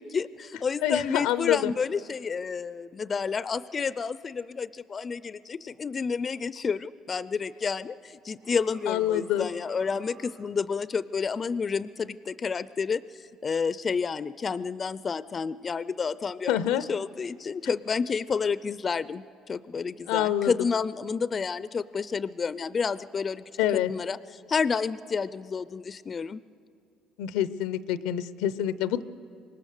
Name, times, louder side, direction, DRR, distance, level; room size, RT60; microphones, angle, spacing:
voice 1, 0.0-23.4 23.7-26.4, left 5 dB, 35° left, 17 dB, 0.4 m, -30 dB
voice 2, 0.8-1.7 8.9-9.5 16.5-16.8 20.1-20.7 23.6-23.9 27.2-29.0, left 12 dB, 85° left, 15 dB, 0.6 m, -26 dB
sound 1, 8.3-10.6, right 4 dB, 70° right, 5.2 m, -52 dB
25.0 x 20.0 x 6.6 m, 2.4 s
supercardioid pair, 95°, 0 cm